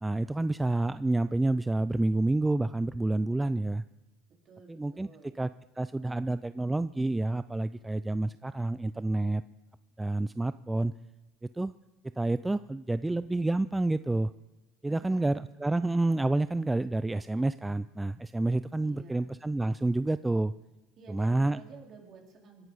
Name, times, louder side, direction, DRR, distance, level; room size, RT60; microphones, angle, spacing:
voice 1, 0.0-3.8 4.7-5.1 5.3-5.5 5.8-9.4 10.0-10.9 11.5-11.7 12.2-14.3 14.8-20.5 21.1-21.6, right 2 dB, 10° right, 14 dB, 0.4 m, -29 dB
voice 2, 4.4-5.3 14.9-15.3 18.8-19.3 21.0-22.6, right 5 dB, 45° right, 0 dB, 4.2 m, -51 dB
25.0 x 11.0 x 4.1 m, 1.1 s
hypercardioid pair, 75°, 0 cm